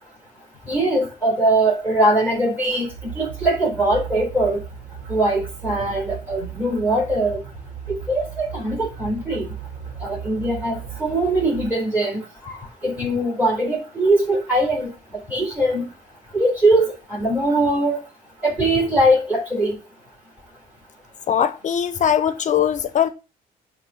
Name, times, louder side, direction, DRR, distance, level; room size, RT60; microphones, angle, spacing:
voice 1, 0.7-4.6 5.1-7.4 7.9-9.5 10.0-14.9 15.3-15.9 16.3-18.0 18.4-19.8, right 1 dB, 10° right, 4.4 m, -21 dB
sound 1, 2.9-11.7, right 9 dB, 80° right, 1.0 m, -36 dB
voice 2, 21.3-23.1, left 9 dB, 45° left, 0.8 m, -20 dB
10.5 x 3.6 x 7.0 m
cardioid pair, 110°, 17 cm